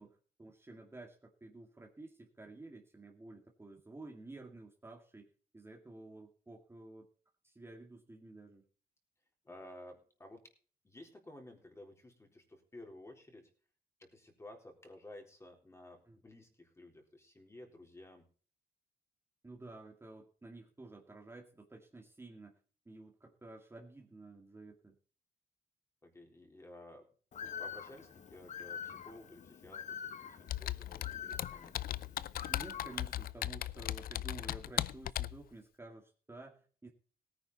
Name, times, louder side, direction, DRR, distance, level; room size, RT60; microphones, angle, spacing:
voice 1, 0.0-5.3 5.5-7.1 7.4-8.6 16.1-16.2 19.4-22.5 22.9-24.9 32.5-36.9, right 2 dB, 15° right, 0 dB, 2.3 m, -52 dB
voice 2, 9.5-10.4 10.8-13.5 14.0-18.3 26.0-27.1 27.4-31.7, left 1 dB, 15° left, 2 dB, 3.8 m, -54 dB
Bird, 27.3-33.3, left 8 dB, 50° left, 1.2 m, -46 dB
Computer keyboard, 30.5-35.4, left 12 dB, 65° left, 0.5 m, -38 dB
17.5 x 9.9 x 4.1 m, 0.41 s
cardioid pair, 115°, 16 cm